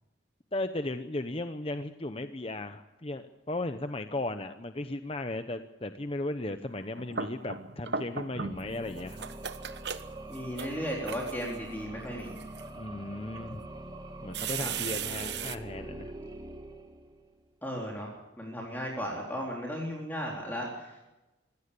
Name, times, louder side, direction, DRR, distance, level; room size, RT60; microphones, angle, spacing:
voice 1, 0.5-9.2 12.7-13.6 14.2-16.1, left 2 dB, 30° left, 9 dB, 0.8 m, -36 dB
sound 1, 6.8-8.7 9.0-11.5 12.2-12.7 13.3-13.4 14.3-15.6, right 6 dB, 55° right, 1.1 m, -37 dB
sound 2, 8.3-17.4, right 1 dB, 20° right, 1.9 m, -44 dB
voice 2, 10.3-12.4 14.6-14.7 17.6-21.0, equal, 10° left, -2 dB, 3.7 m, -36 dB
25.0 x 16.5 x 7.0 m, 1.0 s
head